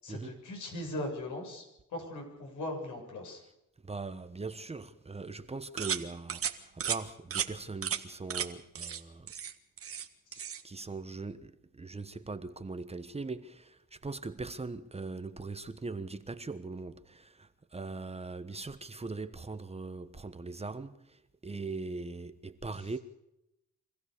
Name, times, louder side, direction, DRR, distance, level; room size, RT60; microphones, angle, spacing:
voice 1, 0.0-1.6 1.9-3.4 10.3-10.5, left 1 dB, 75° left, 7.7 m, -39 dB
voice 2, 3.8-9.3 10.6-23.0, right 3 dB, 20° right, 1.3 m, -41 dB
sound 1, 5.8-6.0 6.3-6.5 6.8-7.0 7.3-7.5 7.8-8.0 8.3-8.5 8.7-9.0 9.3-10.1 10.3-10.6, right 8 dB, 50° right, 1.7 m, -34 dB
25.0 x 15.5 x 6.8 m
cardioid pair, 90°, 30 cm